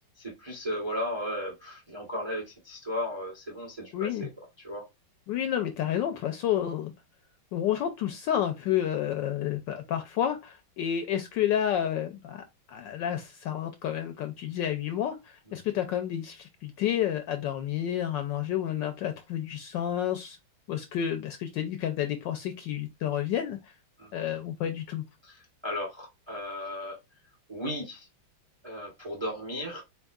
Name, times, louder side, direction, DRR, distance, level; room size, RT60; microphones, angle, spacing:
voice 1, 0.2-4.3 4.6-4.8 24.0-24.1 25.2-27.0 27.5-28.1 28.6-29.8, left 1 dB, 20° right, 0.7 m, -35 dB
voice 2, 3.9-4.3 5.3-6.9 7.5-20.4 20.7-23.7 24.1-25.0, left 10 dB, 75° left, 1.1 m, -30 dB
4.1 x 3.6 x 2.3 m
omnidirectional pair, 2.3 m